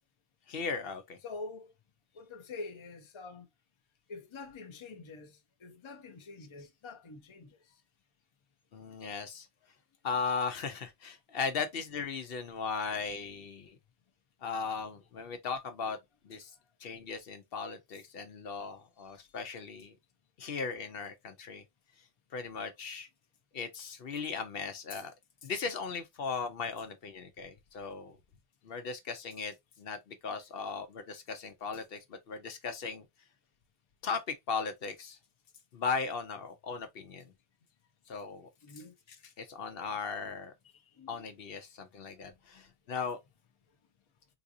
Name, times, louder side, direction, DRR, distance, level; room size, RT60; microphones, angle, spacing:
voice 1, 0.5-1.2 8.7-9.5 10.0-13.8 14.4-16.0 16.2-16.5 16.8-19.9 20.4-21.6 22.3-23.1 23.5-25.1 25.4-28.2 28.6-33.1 34.0-35.2 35.7-37.3 38.1-38.5 39.4-40.5 41.1-43.2, left 5 dB, 70° left, 0.8 m, -37 dB
voice 2, 1.2-1.7 2.1-3.5 4.1-7.6 38.6-38.9 40.7-41.3 42.5-42.6, left 3 dB, 35° left, 0.6 m, -46 dB
3.9 x 2.5 x 2.6 m
omnidirectional pair, 1.1 m